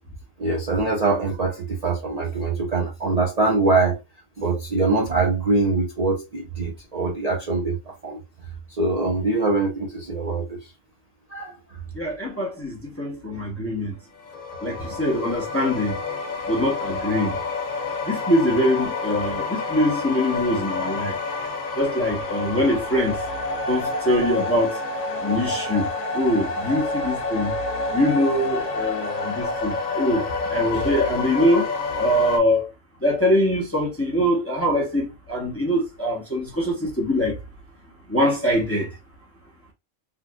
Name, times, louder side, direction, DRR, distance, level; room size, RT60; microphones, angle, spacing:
voice 1, 0.4-4.0 4.4-8.2 8.8-10.6 11.3-11.5, right 3 dB, 40° right, 0.6 m, -23 dB
voice 2, 12.0-13.9 14.6-16.0 16.5-17.3 18.1-21.1 21.8-23.1 23.7-24.8 25.2-25.9 26.1-27.5 27.9-30.2 30.5-31.7 32.0-32.7 33.0-37.3 38.1-38.9, equal, 15° left, 0.7 m, -23 dB
sound 1, 14.2-32.4, left 3 dB, 75° left, 1.1 m, -28 dB
3.7 x 2.4 x 2.3 m
omnidirectional pair, 1.4 m